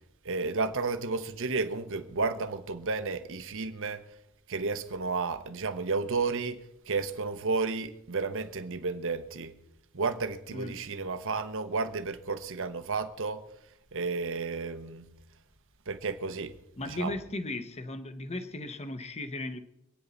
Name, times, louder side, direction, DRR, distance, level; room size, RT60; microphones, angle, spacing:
voice 1, 0.2-4.0 4.5-9.5 9.9-13.4 13.9-15.0 15.9-16.5 16.8-17.1, right 4 dB, 60° right, 1.2 m, -32 dB
voice 2, 10.5-10.9 16.8-19.6, left 2 dB, 30° left, 0.9 m, -36 dB
26.0 x 9.7 x 4.1 m
head